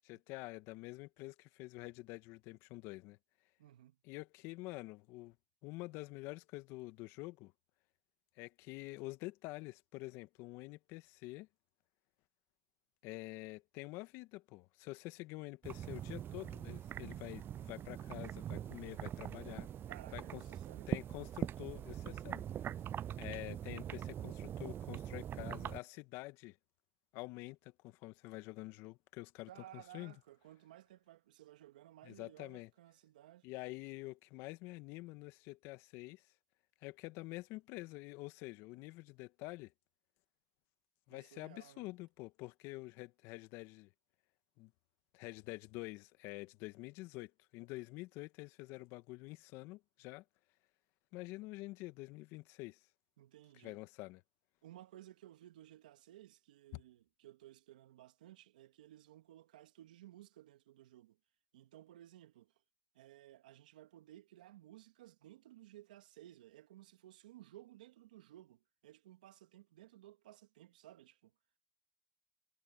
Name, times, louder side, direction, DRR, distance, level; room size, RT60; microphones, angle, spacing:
voice 1, 0.0-3.2 4.0-5.4 5.6-7.5 8.4-11.5 13.0-19.7 20.1-20.4 20.9-22.4 23.2-26.6 27.1-30.1 32.0-32.7 33.4-36.2 36.8-39.7 41.1-43.9 44.6-44.7 45.1-50.2 51.1-52.8 53.6-54.2 56.7-56.8, left 21 dB, 75° left, 1.7 m, -47 dB
voice 2, 3.6-4.0 19.9-20.9 29.5-33.5 41.1-41.9 53.2-53.8 54.6-61.2 61.5-62.5 62.9-71.3, right 14 dB, 85° right, 2.4 m, -57 dB
sound 1, 15.6-25.8, right 10 dB, 60° right, 0.3 m, -43 dB
hypercardioid pair, 40°, 4 cm